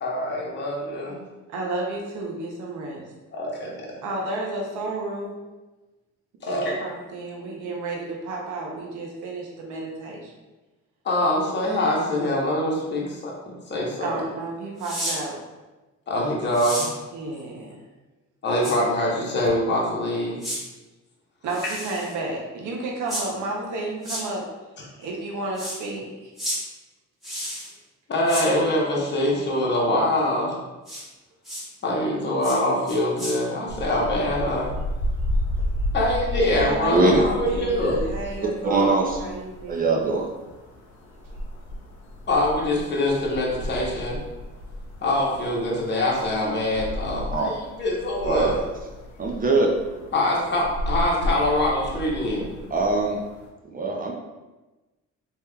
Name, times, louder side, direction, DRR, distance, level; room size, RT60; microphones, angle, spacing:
voice 1, 0.0-1.2 3.3-3.9 6.4-7.0 11.0-13.3 13.7-14.1 16.1-17.0 18.4-20.5 25.0-25.1 28.1-30.6 31.8-34.7 35.9-38.0 42.3-44.2 45.0-48.5 50.1-52.5, left 1 dB, 35° left, -3 dB, 0.9 m, -24 dB
voice 2, 1.5-3.1 4.0-5.4 6.5-10.3 14.0-15.4 17.1-17.8 21.4-24.5 25.0-26.3 36.3-40.0, right 2 dB, 80° right, -1 dB, 0.7 m, -32 dB
sound 1, 14.8-15.2 16.5-16.9 18.6-18.7 20.4-20.6 21.5-22.1 23.1-23.2 24.0-24.2 25.6-25.8 26.4-26.6 27.2-27.7 28.3-28.5 30.9-31.0 31.4-31.6 32.4-32.6 32.9-33.3, equal, ahead, 1.2 m, -31 dB
sound 2, 33.7-53.5, left 1 dB, 80° left, 0.8 m, -33 dB
voice 3, 36.9-37.3 38.6-39.2 39.7-40.3 47.3-47.5 48.2-48.6 49.2-49.7 52.7-53.2 53.7-54.1, right 2 dB, 30° right, 1 dB, 0.5 m, -21 dB
3.4 x 2.9 x 2.2 m, 1.1 s
cardioid pair, 90°, 30 cm